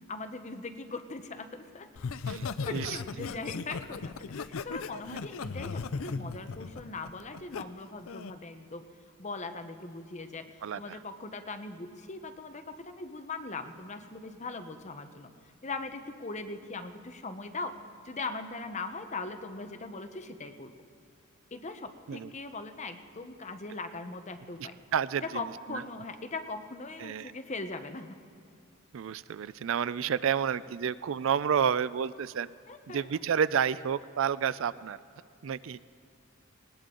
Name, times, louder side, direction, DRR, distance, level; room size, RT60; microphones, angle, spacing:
voice 1, 0.1-1.9 2.6-8.8 9.2-15.3 15.6-17.7 18.0-20.7 21.5-24.7 25.2-28.2 32.7-33.1, left 3 dB, 35° left, 8 dB, 0.9 m, -40 dB
Laughter, 2.0-7.6 8.1-8.4, left 4 dB, 75° left, 0.5 m, -37 dB
voice 2, 2.3-3.3 10.6-11.0 22.1-22.3 24.6-25.8 27.0-27.3 28.9-32.5 32.9-35.0 35.4-35.8, right 7 dB, 65° right, 18 dB, 0.4 m, -30 dB
20.0 x 19.0 x 3.9 m, 2.4 s
head